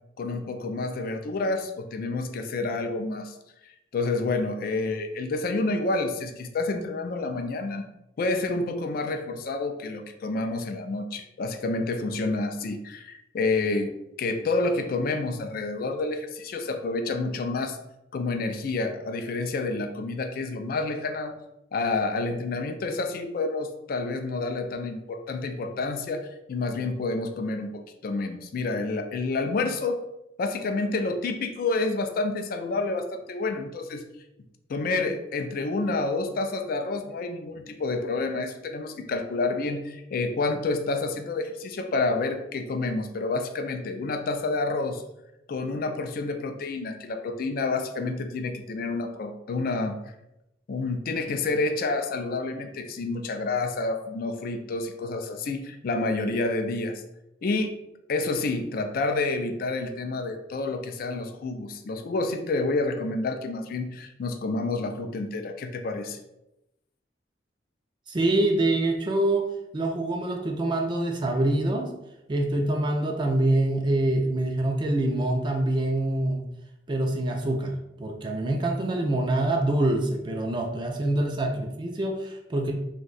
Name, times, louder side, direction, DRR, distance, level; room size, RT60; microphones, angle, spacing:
voice 1, 0.2-3.3 3.6-7.9 8.2-17.8 18.1-21.3 21.7-30.0 30.4-34.1 34.7-45.0 45.5-50.0 50.7-57.0 57.4-57.8 58.1-66.2, left 3 dB, 55° left, 7 dB, 0.3 m, -29 dB
voice 2, 68.1-71.9 72.3-76.4 76.9-82.7, right 1 dB, 25° right, 2 dB, 0.3 m, -25 dB
2.6 x 2.2 x 3.8 m, 0.87 s
head